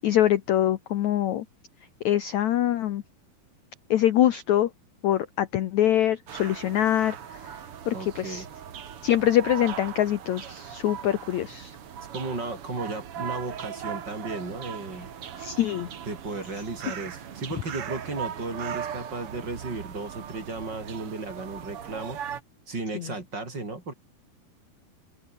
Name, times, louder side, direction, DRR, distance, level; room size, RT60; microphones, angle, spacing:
voice 1, 0.0-1.4 2.0-3.0 3.9-4.7 5.0-7.4 7.8-8.4 9.0-11.8 15.4-15.9 22.9-23.1, left 12 dB, 80° left, 1.6 m, -24 dB
sound 1, 6.3-22.4, right 8 dB, 50° right, 1.7 m, -39 dB
voice 2, 7.9-8.5 12.1-15.1 16.1-22.2 22.7-23.9, right 3 dB, 25° right, 6.1 m, -35 dB
open air
omnidirectional pair, 4.8 m